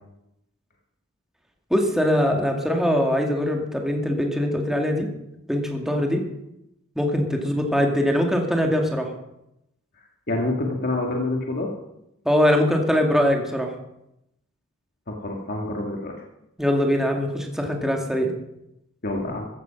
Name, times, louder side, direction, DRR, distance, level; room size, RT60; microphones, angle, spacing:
voice 1, 1.7-5.1 5.5-6.2 7.0-9.1 12.3-13.7 16.6-18.3, equal, ahead, 1 dB, 2.0 m, -22 dB
voice 2, 10.3-11.7 15.1-16.1 19.0-19.5, left 2 dB, 45° left, 0 dB, 1.9 m, -27 dB
15.0 x 11.5 x 5.9 m, 0.84 s
head